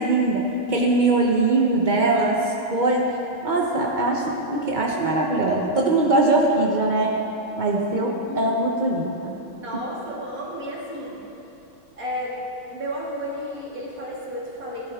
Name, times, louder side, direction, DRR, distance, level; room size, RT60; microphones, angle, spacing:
voice 1, 0.0-3.1 3.4-7.2 7.6-9.4, right 2 dB, 80° right, -1 dB, 0.4 m, -21 dB
voice 2, 9.6-11.2 12.0-12.4 12.7-14.9, equal, 40° right, -6 dB, 2.6 m, -32 dB
14.0 x 11.5 x 3.6 m, 2.9 s
omnidirectional pair, 2.3 m